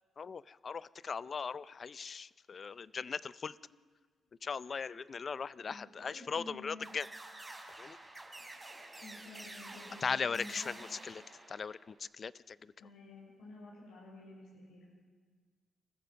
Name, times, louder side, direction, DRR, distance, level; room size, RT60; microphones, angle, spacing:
voice 1, 0.2-3.6 4.4-7.1 7.8-8.0 10.0-11.2 11.5-12.7, left 5 dB, 40° left, 17 dB, 0.5 m, -39 dB
voice 2, 4.7-5.0 5.7-6.9 8.0-8.2 9.0-10.7 12.8-14.9, left 2 dB, 85° left, -4 dB, 6.0 m, -52 dB
sound 1, 6.8-12.0, right 2 dB, 15° right, 4.0 m, -50 dB
26.0 x 15.0 x 6.9 m, 1.6 s
cardioid pair, 95°, 0 cm